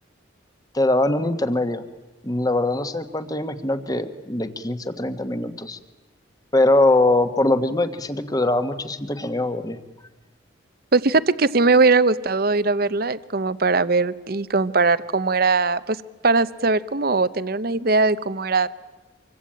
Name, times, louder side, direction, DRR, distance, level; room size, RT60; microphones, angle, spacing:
voice 1, 0.7-1.8 2.2-5.8 6.5-9.8, left 2 dB, 20° left, 10 dB, 1.5 m, -22 dB
voice 2, 10.9-16.0 16.2-18.7, right 3 dB, 50° right, 15 dB, 0.8 m, -20 dB
26.0 x 24.0 x 8.9 m, 1.2 s
head